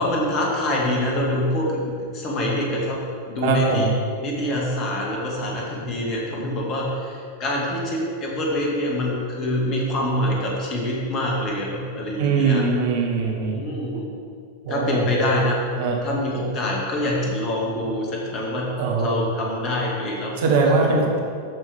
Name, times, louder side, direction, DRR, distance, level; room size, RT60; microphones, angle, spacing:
voice 1, 0.0-3.9 4.2-12.7 13.5-14.1 14.7-15.7 16.0-18.7 19.0-20.7, left 1 dB, 35° left, -3 dB, 2.2 m, -25 dB
voice 2, 3.4-3.9 12.2-13.6 14.6-15.1 15.8-16.0 18.7-19.2 20.4-21.2, right 4 dB, 55° right, 0 dB, 1.4 m, -21 dB
13.5 x 5.5 x 3.7 m, 2.3 s
figure-of-eight pair, 90°, 0 cm